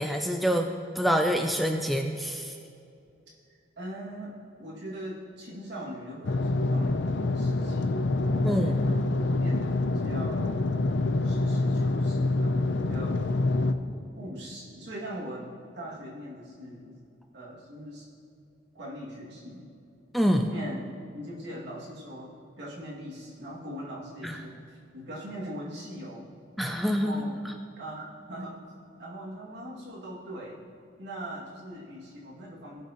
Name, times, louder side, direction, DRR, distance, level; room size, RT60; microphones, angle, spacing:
voice 1, 0.0-2.5 8.4-8.7 20.1-20.5 24.2-24.4 26.6-27.5, equal, ahead, 4 dB, 0.4 m, -26 dB
voice 2, 3.8-4.3 4.6-10.6 11.2-13.2 14.2-15.5 15.7-17.0 17.3-18.1 18.7-19.6 20.5-22.3 22.6-26.3 26.8-27.3 27.8-28.6 29.0-30.6 31.0-32.8, equal, 65° right, -5 dB, 2.2 m, -41 dB
sound 1, 6.2-13.7, left 2 dB, 75° left, 0.5 m, -26 dB
17.0 x 5.9 x 2.9 m, 2.5 s
head